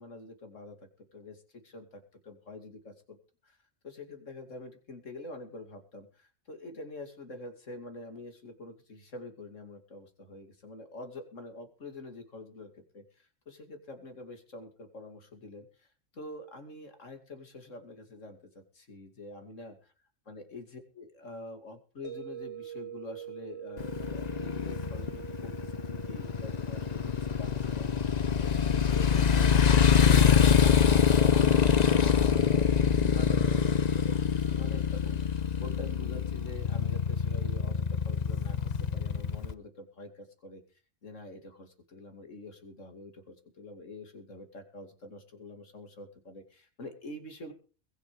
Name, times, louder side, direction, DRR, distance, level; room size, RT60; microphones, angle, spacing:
voice 1, 0.0-3.2 3.4-3.6 3.8-15.7 16.1-19.7 20.3-29.5 29.9-40.6 41.0-47.5, left 2 dB, 80° left, 6 dB, 2.9 m, -46 dB
sound 1, 22.0-37.0, right 11 dB, 80° right, 4.1 m, -48 dB
Motorcycle, 23.8-39.5, left 7 dB, 40° left, 0.8 m, -25 dB
21.5 x 7.3 x 5.0 m, 0.37 s
omnidirectional pair, 1.3 m